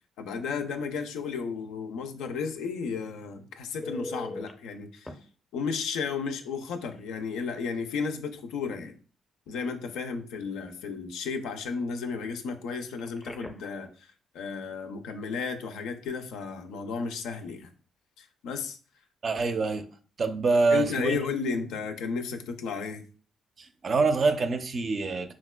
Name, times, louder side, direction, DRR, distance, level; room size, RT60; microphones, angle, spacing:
voice 1, 0.2-5.1 5.5-8.9 9.5-13.9 14.3-17.7 18.2-18.8 20.7-23.0, left 5 dB, 90° left, 0.4 m, -33 dB
Telephone, 3.8-4.5 5.1-5.2 6.9-7.1 7.5-7.6 12.9-13.8 20.9-21.1, left 1 dB, 15° left, 0.5 m, -39 dB
voice 2, 19.2-19.8 20.2-21.2 23.6-25.3, right 4 dB, 45° right, 0.4 m, -25 dB
4.0 x 2.2 x 2.2 m
cardioid pair, 90°, 0 cm